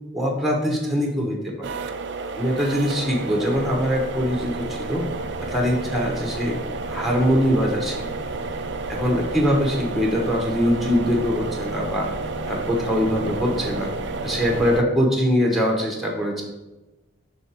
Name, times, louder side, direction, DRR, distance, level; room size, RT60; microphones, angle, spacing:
voice 1, 0.1-1.7 2.3-5.0 5.4-6.6 6.9-8.3 8.9-12.1 12.4-13.9 14.2-16.4, equal, ahead, 0 dB, 0.9 m, -23 dB
sound 1, 1.6-14.8, right 4 dB, 60° right, 0.4 m, -31 dB
sound 2, 3.5-14.8, equal, 70° left, 1.2 m, -37 dB
6.3 x 3.8 x 4.3 m, 1.1 s
head